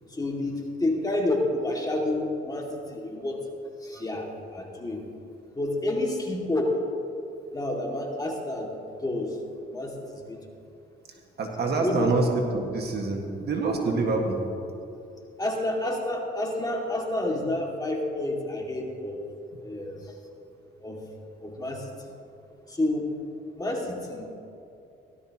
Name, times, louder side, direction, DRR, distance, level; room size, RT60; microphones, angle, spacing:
voice 1, 0.1-3.4 3.8-5.0 5.5-6.7 7.5-8.7 9.0-9.3 9.7-10.4 11.8-12.1 15.4-19.2 19.6-20.1 20.8-21.0 21.4-21.8 22.7-23.1 23.6-24.3, left 1 dB, 20° left, -1 dB, 2.2 m, -29 dB
voice 2, 11.4-14.4 19.5-19.6, right 3 dB, 55° right, 1 dB, 1.8 m, -26 dB
17.5 x 12.5 x 3.0 m, 2.7 s
cardioid pair, 90°, 20 cm